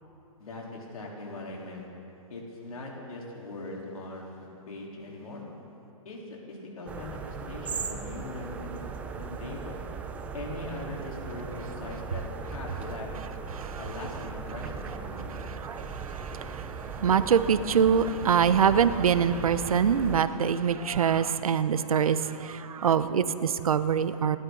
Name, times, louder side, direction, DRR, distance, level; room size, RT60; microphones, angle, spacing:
voice 1, 0.4-1.9 2.3-5.4 6.0-8.9 9.2-9.8 10.3-13.1 13.8-15.3, left 2 dB, 90° left, -2 dB, 3.8 m, -40 dB
sound 1, 6.9-20.2, right 5 dB, 10° right, 0.4 m, -38 dB
voice 2, 15.3-24.4, right 7 dB, 90° right, 13 dB, 0.8 m, -25 dB
27.5 x 12.5 x 3.9 m, 2.9 s
hypercardioid pair, 160°, 18 cm